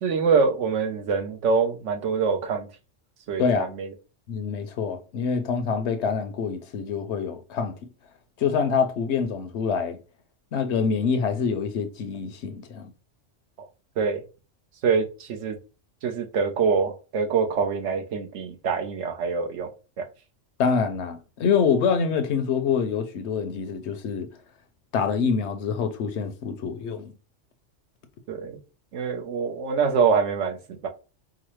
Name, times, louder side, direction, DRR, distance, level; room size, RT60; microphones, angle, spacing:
voice 1, 0.0-2.7 3.3-3.9 13.6-13.7 14.0-14.2 14.8-15.6 16.0-19.7 20.0-20.1 28.3-28.6 28.9-30.6 30.8-30.9, right 5 dB, 75° right, 1.0 m, -25 dB
voice 2, 3.4-3.7 4.3-7.7 8.4-10.0 10.5-12.9 20.6-24.3 24.9-27.1, left 6 dB, 70° left, 0.8 m, -25 dB
4.8 x 2.0 x 3.0 m
omnidirectional pair, 1.3 m